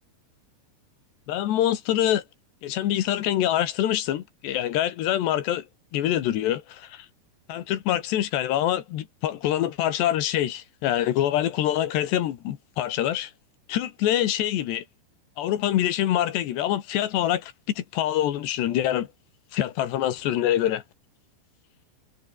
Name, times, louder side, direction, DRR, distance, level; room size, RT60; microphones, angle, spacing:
voice 1, 1.3-2.2 2.6-5.6 5.9-7.1 7.5-13.3 13.7-14.8 15.4-19.1 19.5-20.8, left 12 dB, 75° left, 3.8 m, -25 dB
omnidirectional pair, 5.1 m